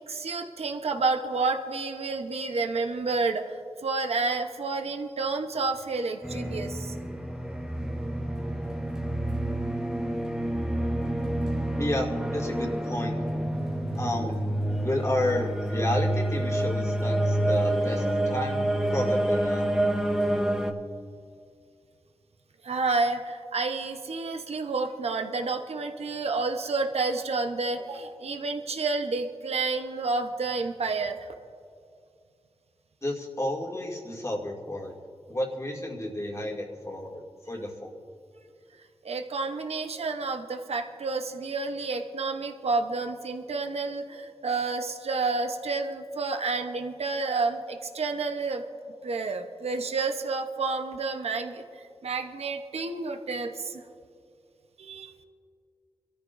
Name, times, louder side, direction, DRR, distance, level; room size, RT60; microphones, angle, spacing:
voice 1, 0.1-6.9 22.6-31.3 39.0-48.6 49.0-51.6 52.0-53.8 54.8-55.1, right 3 dB, 80° right, 5 dB, 0.9 m, -30 dB
sound 1, 6.2-20.7, right 1 dB, 5° right, 0.9 m, -28 dB
voice 2, 11.8-13.2 13.9-14.4 14.8-18.6 18.9-19.6 33.0-34.9 35.3-37.9, left 1 dB, 30° left, -2 dB, 2.4 m, -31 dB
25.0 x 13.5 x 2.6 m, 2.4 s
wide cardioid pair, 65°, 10 cm